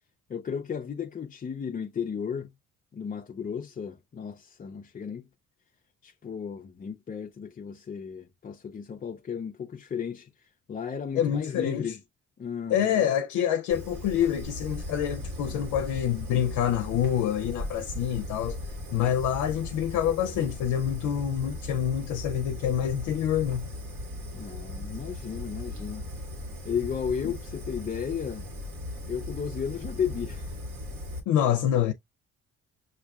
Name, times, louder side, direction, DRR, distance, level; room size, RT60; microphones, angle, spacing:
voice 1, 0.3-2.5 2.9-5.2 6.0-10.3 10.7-12.0 12.4-13.0 18.9-19.1 24.1-26.0 26.6-28.5 29.1-30.6, left 7 dB, 30° left, 0.4 m, -34 dB
voice 2, 11.1-12.0 12.7-18.6 18.9-23.7 27.2-27.3 31.3-31.9, left 9 dB, 85° left, 0.5 m, -27 dB
Fire, 13.7-31.2, left 1 dB, 80° right, 1.5 m, -38 dB
5.8 x 2.6 x 2.3 m
cardioid pair, 90°, 30 cm